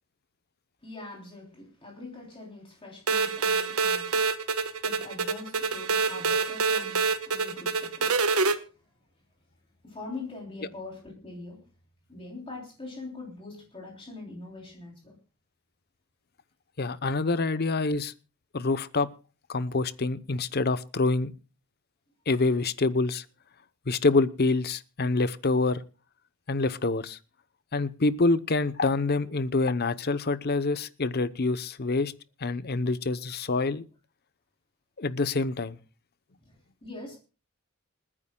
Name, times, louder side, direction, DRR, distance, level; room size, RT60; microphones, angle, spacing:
voice 1, 0.8-8.4 9.8-11.7 12.1-15.2 36.4-37.2, left 3 dB, 25° left, -1 dB, 3.3 m, -43 dB
sound 1, 3.1-8.5, right 4 dB, 85° right, 1.3 m, -26 dB
voice 2, 16.8-18.1 18.5-19.1 19.5-21.3 22.3-23.2 23.9-25.8 26.5-27.2 27.7-32.1 32.4-33.8 35.0-35.8, left 3 dB, 45° left, 15 dB, 0.8 m, -26 dB
28.0 x 9.8 x 2.3 m, 0.34 s
head